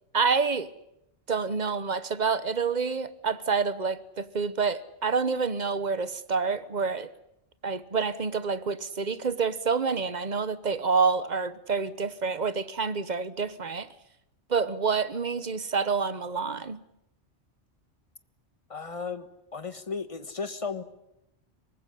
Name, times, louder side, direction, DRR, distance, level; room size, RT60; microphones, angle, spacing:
voice 1, 0.1-0.7 1.3-7.1 7.6-13.9 14.5-16.8, right 5 dB, 40° right, 1.1 m, -28 dB
voice 2, 18.7-20.8, left 5 dB, 30° left, 1.5 m, -35 dB
23.5 x 20.0 x 10.0 m
omnidirectional pair, 1.2 m